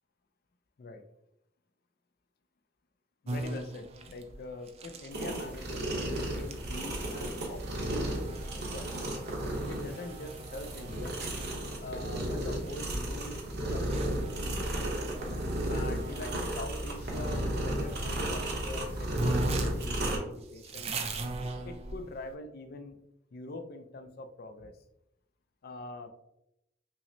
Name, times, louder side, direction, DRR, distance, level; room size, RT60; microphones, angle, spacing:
voice 1, 3.2-8.9 9.7-11.2 11.8-14.6 15.7-21.0 21.6-23.0 23.3-24.7 25.6-26.1, left 2 dB, 50° left, 8 dB, 0.4 m, -44 dB
sound 1, 3.3-16.4 17.1-18.5 18.8-18.9 19.1-22.3, right 2 dB, 30° right, 0.4 m, -41 dB
sound 2, 5.1-20.2, right 1 dB, 55° right, 0.8 m, -34 dB
5.6 x 2.1 x 2.6 m, 0.82 s
head